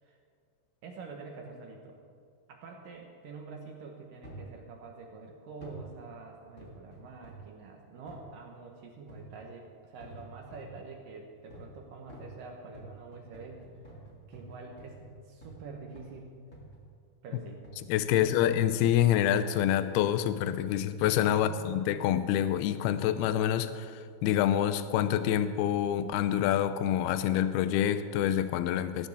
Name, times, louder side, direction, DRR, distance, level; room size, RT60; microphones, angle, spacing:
voice 1, 0.8-2.0 2.5-13.6 14.3-15.0 15.3-16.3 17.2-17.6 18.1-18.5 21.3-21.9, right 4 dB, 65° right, 1 dB, 2.3 m, -46 dB
sound 1, 4.2-4.5 5.6-5.9 6.6-7.5 8.1-8.3 9.1-9.4 10.0-10.8 11.5-11.8 12.1-15.7 15.9-16.2 16.5-16.9 17.6-17.9 18.7-19.0 19.6-19.7, right 1 dB, 25° left, 1.7 m, -49 dB
voice 2, 17.9-29.1, left 11 dB, 80° left, 12 dB, 2.4 m, -27 dB
18.5 x 14.5 x 3.6 m, 2.2 s
omnidirectional pair, 5.0 m